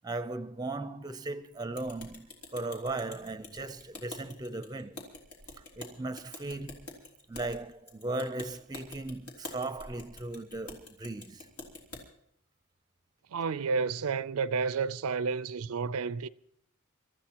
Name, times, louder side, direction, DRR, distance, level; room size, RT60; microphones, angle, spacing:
voice 1, 0.0-5.1 5.8-6.9 7.3-11.5, right 2 dB, 20° right, 0.6 m, -37 dB
sound 1, 1.7-12.0, left 2 dB, 85° left, 3.6 m, -47 dB
voice 2, 13.3-16.3, right 5 dB, 75° right, 0.5 m, -31 dB
27.5 x 13.5 x 2.9 m
head